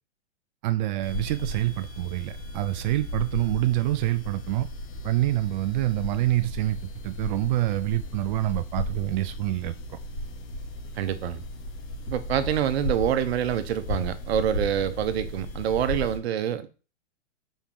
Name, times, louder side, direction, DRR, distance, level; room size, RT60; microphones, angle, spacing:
voice 1, 0.6-4.7 5.0-6.8 7.0-10.0, right 16 dB, 40° right, 0.5 m, -26 dB
sound 1, 1.0-16.2, left 1 dB, 50° left, 3.1 m, -35 dB
voice 2, 10.9-11.4 12.1-16.7, right 10 dB, 60° right, 1.1 m, -26 dB
7.0 x 5.1 x 3.9 m
hypercardioid pair, 120°, 36 cm